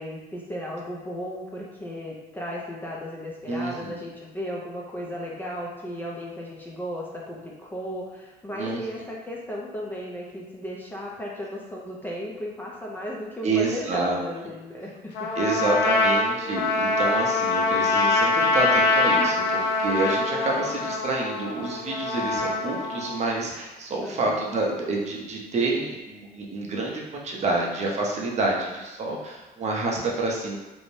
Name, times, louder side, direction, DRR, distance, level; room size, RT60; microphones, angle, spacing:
voice 1, 0.0-15.3 24.0-24.4, equal, 10° left, -4 dB, 0.4 m, -35 dB
voice 2, 3.5-4.0 8.5-8.8 13.4-14.2 15.3-30.6, right 3 dB, 40° right, -2 dB, 0.5 m, -28 dB
Trumpet, 15.1-23.2, left 3 dB, 85° left, 0.4 m, -24 dB
2.6 x 2.0 x 3.0 m, 1.2 s
cardioid pair, 110°, 17 cm